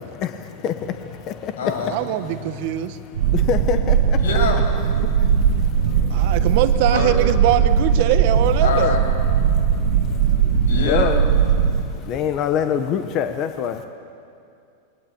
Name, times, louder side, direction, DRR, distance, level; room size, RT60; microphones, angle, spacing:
voice 1, 0.4-0.9 1.6-2.0 3.3-3.8 4.2-4.7 5.8-6.2 6.8-7.2 8.6-9.0 9.7-9.8 10.1-11.2, left 5 dB, 90° left, 4 dB, 6.4 m, -27 dB
voice 2, 1.9-3.0 6.1-9.0, right 12 dB, 40° right, 9 dB, 1.3 m, -22 dB
sound 1, 3.1-11.8, right 7 dB, 70° right, 2.1 m, -19 dB
voice 3, 3.3-4.2 10.7-11.2 12.1-13.8, left 8 dB, 25° left, 8 dB, 0.9 m, -24 dB
27.5 x 22.0 x 8.6 m, 2.4 s
supercardioid pair, 180°, 0 cm